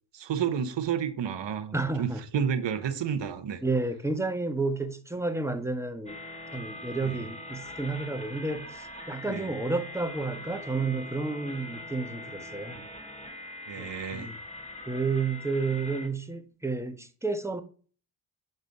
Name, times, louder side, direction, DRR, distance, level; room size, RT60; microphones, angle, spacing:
voice 1, 0.1-3.6 7.0-7.2 9.3-9.5 13.7-14.3, right 8 dB, 60° right, 1.0 m, -31 dB
voice 2, 1.7-2.2 3.6-6.2 6.5-12.8 13.8-14.4 14.9-17.6, right 3 dB, 5° right, 1.2 m, -31 dB
sound 1, 6.1-16.1, left 1 dB, 15° left, 2.0 m, -42 dB
6.2 x 5.4 x 5.3 m
supercardioid pair, 50°, 49 cm